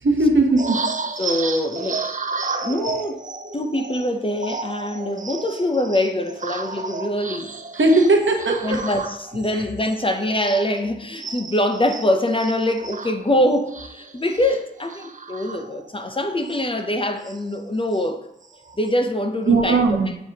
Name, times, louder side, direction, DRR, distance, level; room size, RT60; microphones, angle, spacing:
voice 1, 0.0-0.8 7.7-8.8 9.5-9.6 19.5-20.1, right 2 dB, 85° right, 0.9 m, -18 dB
sound 1, 0.6-10.9 11.2-16.0 16.4-16.6 16.9-18.1 18.4-18.9, right 4 dB, 40° right, 0.5 m, -33 dB
voice 2, 1.2-2.0 2.4-3.2 3.5-7.5 8.6-18.3 18.8-19.8, left 1 dB, 25° left, 0.6 m, -24 dB
7.5 x 4.8 x 2.8 m
wide cardioid pair, 65°, 20 cm